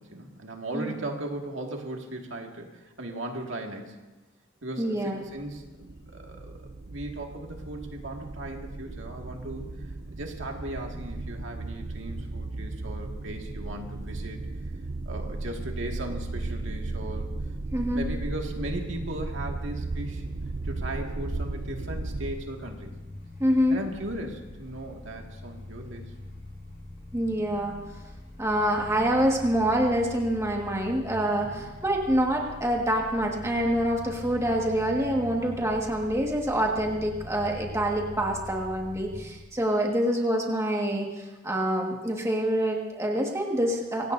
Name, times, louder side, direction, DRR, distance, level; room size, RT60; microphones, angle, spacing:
voice 1, 0.0-4.0 4.6-6.6 6.8-14.4 15.1-17.3 17.9-20.2 20.6-23.0 23.7-26.1 31.4-31.7, right 1 dB, 75° right, 1 dB, 2.0 m, -37 dB
voice 2, 4.8-5.2 17.7-18.0 23.4-23.8 27.1-27.8 28.4-44.1, equal, 15° right, 0 dB, 1.6 m, -26 dB
sound 1, 5.4-22.3, right 2 dB, 50° right, 0.6 m, -35 dB
sound 2, 19.8-39.3, left 1 dB, 65° left, 5.0 m, -43 dB
25.0 x 17.5 x 2.7 m, 1.1 s
head